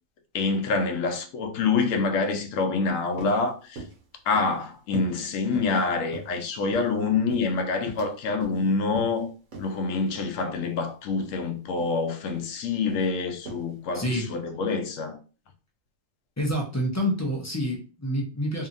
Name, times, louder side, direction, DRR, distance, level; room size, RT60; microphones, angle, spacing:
voice 1, 0.3-3.8 4.3-9.3 9.6-15.2, left 4 dB, 90° left, 1.0 m, -26 dB
sound 1, 2.8-2.9 3.2-3.4 3.8-4.0 4.3-4.6 4.9-5.2 5.5-5.8 6.1-6.9 7.3-8.1 8.4-8.6 8.9-9.2 9.5-9.7 10.1-10.2 10.6-10.8 11.1-11.3 11.8-12.0 12.3-12.6 12.9-13.1 13.5-13.7 14.0-14.2, right 2 dB, 70° right, 1.1 m, -41 dB
voice 2, 13.9-14.3 16.4-18.7, equal, 25° left, 0.3 m, -27 dB
2.7 x 2.7 x 2.5 m
omnidirectional pair, 1.3 m